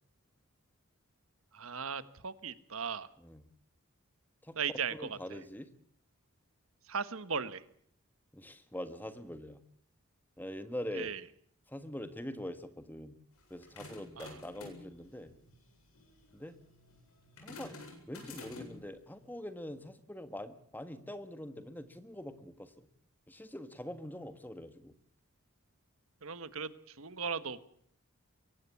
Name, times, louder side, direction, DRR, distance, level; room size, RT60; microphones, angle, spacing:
voice 1, 1.5-3.1 4.5-5.4 6.9-7.6 10.9-11.2 14.2-14.3 26.2-27.6, right 6 dB, 75° right, 14 dB, 1.3 m, -37 dB
voice 2, 4.9-5.7 8.3-9.6 10.4-11.1 11.7-13.2 13.5-15.3 16.3-16.6 17.4-17.8 18.1-22.9 23.3-24.9, left 1 dB, 10° left, 10 dB, 1.4 m, -44 dB
sound 1, 13.4-18.9, left 3 dB, 80° left, 8.0 m, -51 dB
23.0 x 18.0 x 8.4 m, 0.64 s
head